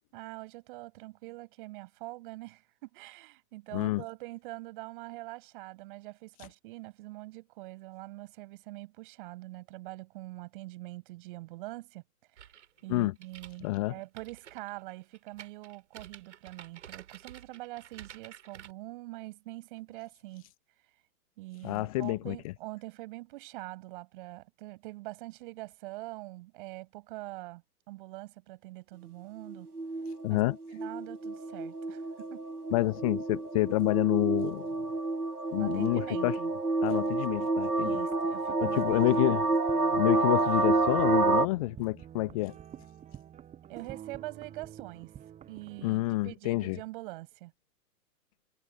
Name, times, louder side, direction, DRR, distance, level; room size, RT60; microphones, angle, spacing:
voice 1, 0.1-12.0 12.8-20.5 21.4-29.7 30.3-30.4 30.7-32.4 35.6-36.5 37.7-39.4 43.7-45.1 45.5-47.5, right 20 dB, 35° right, 6.2 m, -44 dB
voice 2, 3.7-4.0 12.9-13.1 13.6-13.9 21.6-22.4 30.2-30.6 32.7-34.7 35.5-36.4 36.8-38.0 38.6-39.5 39.9-42.5 45.8-46.8, left 21 dB, 25° left, 1.0 m, -28 dB
sound 1, 12.4-18.7, right 9 dB, 50° right, 6.4 m, -50 dB
sound 2, 29.5-41.5, right 3 dB, 75° right, 1.9 m, -29 dB
sound 3, 37.6-45.9, right 10 dB, 15° right, 7.1 m, -49 dB
figure-of-eight pair, 120°, 46 cm